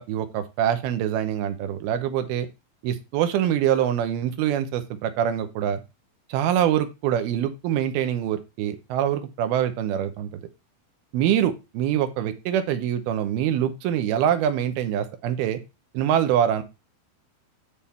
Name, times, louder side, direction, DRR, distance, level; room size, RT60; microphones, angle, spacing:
voice 1, 0.0-2.5 2.8-5.8 6.3-10.4 11.1-15.6 15.9-16.6, right 10 dB, 85° right, 9 dB, 2.7 m, -24 dB
10.5 x 3.6 x 4.2 m, 0.26 s
omnidirectional pair, 4.4 m